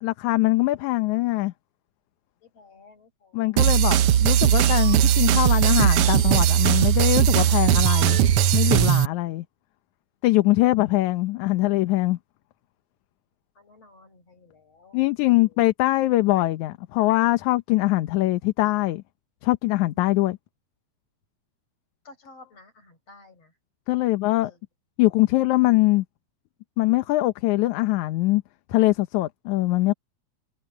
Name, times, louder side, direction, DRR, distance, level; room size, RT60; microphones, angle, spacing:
voice 1, 0.0-1.5 3.3-8.2 8.5-9.4 10.2-12.2 14.9-19.0 19.4-20.4 23.9-24.5 25.0-26.0 26.8-28.4 28.7-29.9, left 18 dB, 80° left, 2.2 m, -22 dB
voice 2, 2.4-3.6 13.6-15.6 22.1-23.5 24.4-24.6, left 3 dB, 55° left, 7.4 m, -52 dB
sound 1, 3.6-9.1, right 10 dB, 70° right, 1.4 m, -19 dB
omnidirectional pair, 3.4 m